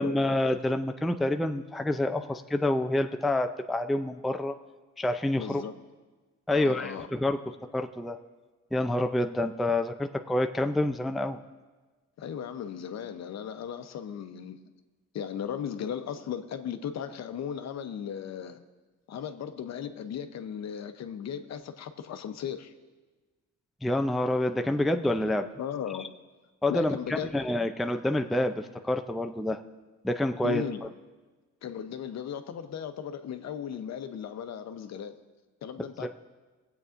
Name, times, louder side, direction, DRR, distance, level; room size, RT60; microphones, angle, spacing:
voice 1, 0.0-4.5 5.0-5.6 6.5-7.4 7.7-8.2 8.7-11.4 23.8-25.5 26.6-29.6 30.0-30.6 36.0-36.1, left 1 dB, ahead, 6 dB, 0.4 m, -27 dB
voice 2, 5.4-5.8 6.5-7.1 12.2-14.6 15.1-18.6 19.1-22.7 25.6-26.1 26.7-27.4 30.4-30.8 31.6-35.2 35.6-36.1, left 8 dB, 60° left, 8 dB, 0.8 m, -36 dB
23.5 x 8.2 x 2.5 m, 1.3 s
cardioid pair, 90°, 30 cm